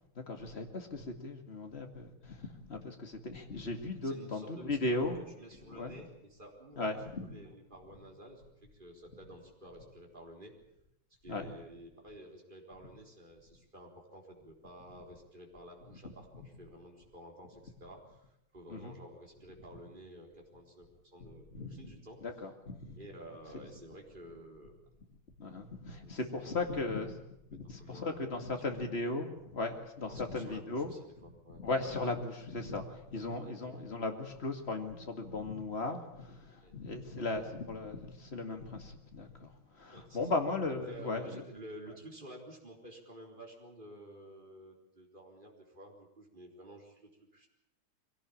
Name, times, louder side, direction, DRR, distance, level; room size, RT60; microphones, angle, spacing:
voice 1, 0.2-5.2 5.7-6.0 6.8-7.3 11.3-11.5 18.7-19.0 21.5-21.8 22.2-23.0 23.5-23.6 25.4-27.2 27.5-30.9 31.5-41.4, left 2 dB, 30° left, 5 dB, 2.3 m, -37 dB
voice 2, 4.0-6.9 7.2-8.4 8.7-10.5 11.2-22.2 22.9-24.7 25.9-27.0 27.8-28.8 30.0-31.6 33.1-33.8 36.6-36.7 39.9-40.4 40.7-47.5, right 1 dB, 25° right, 0 dB, 4.1 m, -52 dB
22.5 x 17.5 x 8.7 m, 0.84 s
omnidirectional pair, 2.2 m